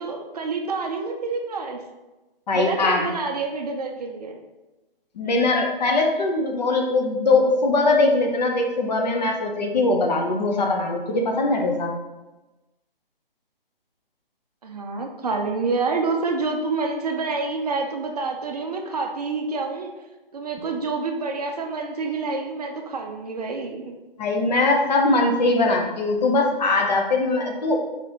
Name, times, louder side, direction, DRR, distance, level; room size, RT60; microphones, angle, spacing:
voice 1, 0.0-1.8 2.5-4.4 14.6-19.9 20.3-23.9, right 3 dB, 40° right, 3 dB, 0.5 m, -27 dB
voice 2, 2.5-3.1 5.2-11.9 24.2-27.8, left 2 dB, 45° left, 1 dB, 0.8 m, -21 dB
4.1 x 4.0 x 3.0 m, 1.1 s
hypercardioid pair, 150°, 29 cm